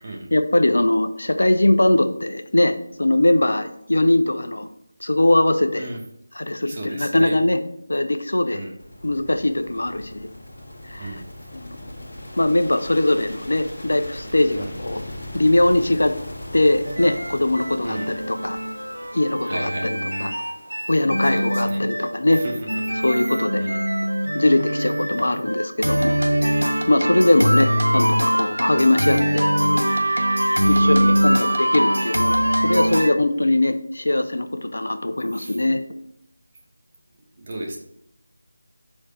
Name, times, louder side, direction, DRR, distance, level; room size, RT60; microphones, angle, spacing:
voice 1, 0.3-4.7 5.0-5.9 6.4-7.6 7.9-8.7 9.0-10.3 10.9-11.2 11.5-12.1 12.4-15.0 15.3-16.1 16.5-18.6 19.1-20.3 20.9-22.4 23.0-23.6 24.3-26.2 26.9-29.5 30.7-35.8, left 1 dB, 65° left, 9 dB, 0.6 m, -21 dB
voice 2, 6.7-7.4 8.5-8.7 11.0-11.2 14.5-14.8 17.8-18.1 19.4-19.9 21.3-21.8 22.3-23.0 23.6-23.8 28.7-28.9 30.6-30.9 35.3-35.6 37.4-37.8, right 2 dB, 30° right, 0 dB, 1.2 m, -34 dB
sound 1, 8.8-23.9, left 1 dB, 50° left, 1.6 m, -40 dB
sound 2, 16.8-33.1, equal, 85° right, 0.5 m, -22 dB
5.0 x 4.4 x 4.3 m, 0.74 s
figure-of-eight pair, 165°, 0 cm